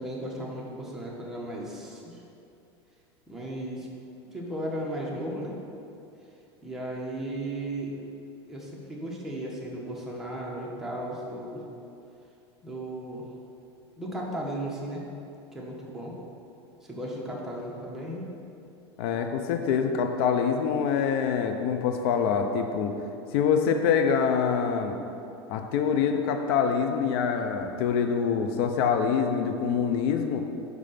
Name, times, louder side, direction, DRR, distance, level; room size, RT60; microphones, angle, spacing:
voice 1, 0.0-2.2 3.3-3.9 4.3-5.5 6.6-7.9 8.5-11.6 12.6-13.3 14.0-15.0 15.5-16.1 16.8-18.2, right 1 dB, 5° right, -4 dB, 1.3 m, -35 dB
voice 2, 19.0-23.0 23.3-25.0 25.5-30.4, left 6 dB, 65° left, 6 dB, 0.6 m, -25 dB
5.1 x 4.8 x 5.8 m, 2.7 s
hypercardioid pair, 100°, 14 cm